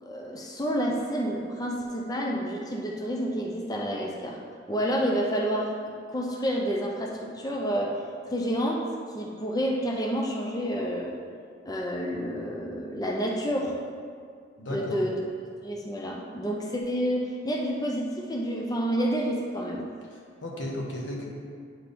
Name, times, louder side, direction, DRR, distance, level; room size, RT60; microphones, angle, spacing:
voice 1, 0.0-4.4 4.7-5.7 6.1-7.9 8.3-8.8 9.2-11.1 11.6-13.7 14.7-15.1 15.6-19.9, equal, 20° left, -1 dB, 0.5 m, -29 dB
voice 2, 14.6-15.0 20.1-21.3, left 1 dB, 80° left, -2 dB, 1.2 m, -35 dB
9.5 x 4.2 x 3.5 m, 2.1 s
head